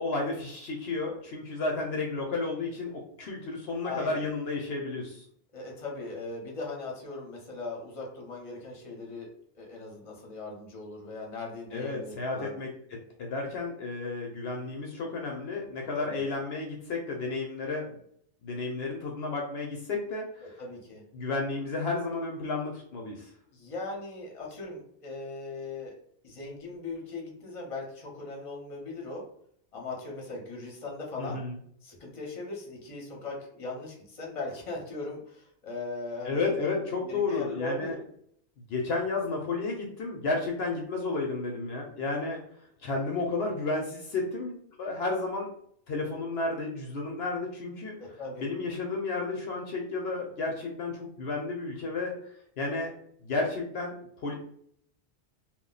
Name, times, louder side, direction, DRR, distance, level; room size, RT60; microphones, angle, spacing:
voice 1, 0.0-5.2 11.7-18.0 18.4-20.4 21.1-23.3 31.2-31.6 36.2-38.0 38.7-42.4 42.8-45.5 45.9-48.0 48.4-52.1 52.6-52.9 53.2-54.0 54.2-54.3, left 3 dB, 70° left, 0 dB, 0.8 m, -32 dB
voice 2, 3.8-4.2 5.5-9.3 9.5-12.6 16.0-16.2 20.6-21.0 23.5-25.9 26.2-29.2 29.7-31.4 31.8-37.9 48.0-48.5, left 3 dB, 35° left, -1 dB, 0.8 m, -39 dB
2.3 x 2.1 x 3.8 m, 0.67 s
omnidirectional pair, 1.2 m